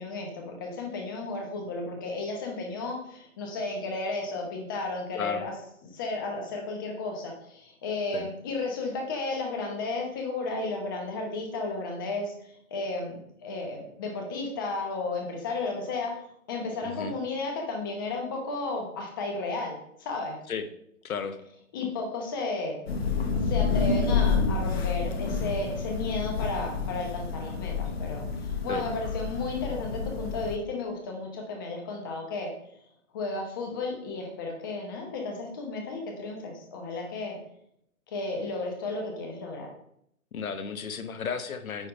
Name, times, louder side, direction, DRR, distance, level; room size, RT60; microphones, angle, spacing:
voice 1, 0.0-5.5 5.8-16.2 16.5-20.4 21.7-22.8 23.4-32.5 33.1-37.4 38.1-39.7, left 3 dB, 15° left, 2 dB, 0.8 m, -33 dB
voice 2, 16.8-17.1 20.5-20.7 21.0-21.4 28.7-28.9 40.3-41.9, left 6 dB, 70° left, 10 dB, 1.1 m, -34 dB
Thunder / Rain, 22.9-30.6, left 5 dB, 45° left, 1.0 m, -29 dB
9.3 x 3.6 x 5.1 m, 0.73 s
hypercardioid pair, 160°, 43 cm